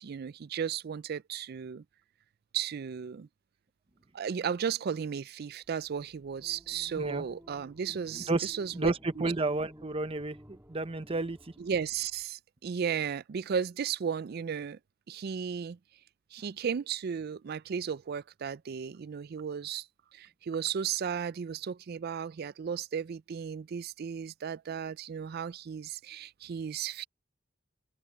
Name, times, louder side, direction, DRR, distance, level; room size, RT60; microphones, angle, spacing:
voice 1, 0.0-1.8 2.5-3.3 4.1-9.3 11.6-14.8 15.1-15.8 16.3-19.9 20.1-27.1, right 7 dB, 55° right, 0.4 m, -35 dB
sound 1, 6.2-12.2, equal, 15° right, 2.8 m, -54 dB
voice 2, 8.3-11.4, right 2 dB, 30° right, 0.9 m, -31 dB
open air
head